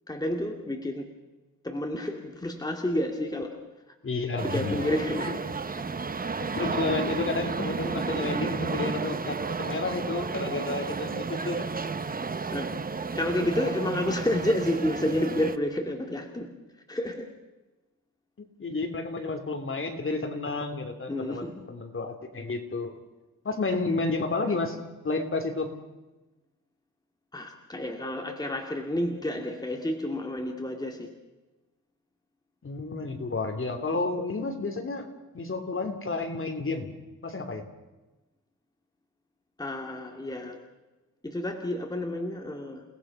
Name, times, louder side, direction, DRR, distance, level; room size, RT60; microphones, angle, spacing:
voice 1, 0.1-1.1 1.6-3.6 3.9-4.0 4.4-5.5 5.7-5.8 12.5-12.7 13.1-16.5 16.9-17.3 21.1-21.5 27.3-31.1 39.6-40.6 41.2-43.0, left 1 dB, 10° left, 3 dB, 2.2 m, -30 dB
voice 2, 4.0-4.8 6.4-11.7 18.4-22.9 23.4-24.8 25.0-25.8 32.6-35.1 35.3-36.9 37.2-37.7, left 3 dB, 40° left, 5 dB, 3.1 m, -31 dB
sound 1, 4.4-15.6, right 4 dB, 25° right, 0.9 m, -32 dB
29.5 x 19.0 x 5.8 m, 1.1 s
wide cardioid pair, 145°, 33 cm